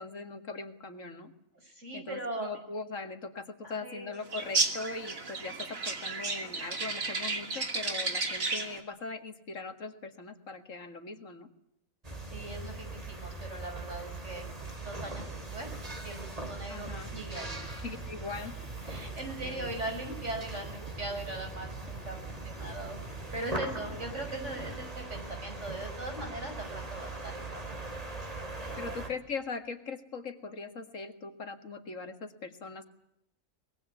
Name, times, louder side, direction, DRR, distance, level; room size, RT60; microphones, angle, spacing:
voice 1, 0.0-1.3 1.9-11.5 16.7-17.1 17.8-18.6 19.4-19.7 24.6-24.8 28.8-32.8, left 4 dB, 70° left, 8 dB, 2.3 m, -40 dB
voice 2, 1.6-2.5 3.6-4.1 12.3-14.4 14.8-15.7 16.0-17.6 18.9-23.0 23.3-27.7 28.6-29.0, right 2 dB, 60° right, 4 dB, 6.1 m, -40 dB
sound 1, 4.3-8.8, right 3 dB, 85° right, 3.1 m, -33 dB
sound 2, 12.0-29.1, right 3 dB, 25° right, 3.3 m, -41 dB
sound 3, 16.9-24.9, equal, 10° right, 2.4 m, -48 dB
24.5 x 21.5 x 8.3 m, 0.78 s
omnidirectional pair, 1.4 m